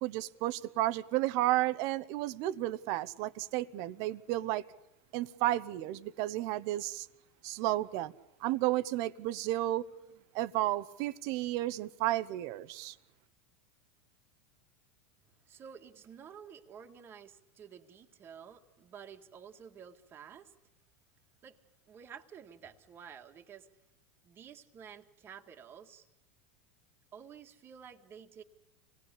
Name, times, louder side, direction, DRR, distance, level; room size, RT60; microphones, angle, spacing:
voice 1, 0.0-4.7 5.1-7.1 7.4-8.1 8.4-9.8 10.3-12.9, right 16 dB, 60° right, 1.0 m, -32 dB
voice 2, 15.5-20.5 21.4-21.6 21.9-23.7 24.2-26.1 27.1-28.4, right 7 dB, 35° right, 1.8 m, -51 dB
26.5 x 19.0 x 8.5 m
hypercardioid pair, 105°, 7 cm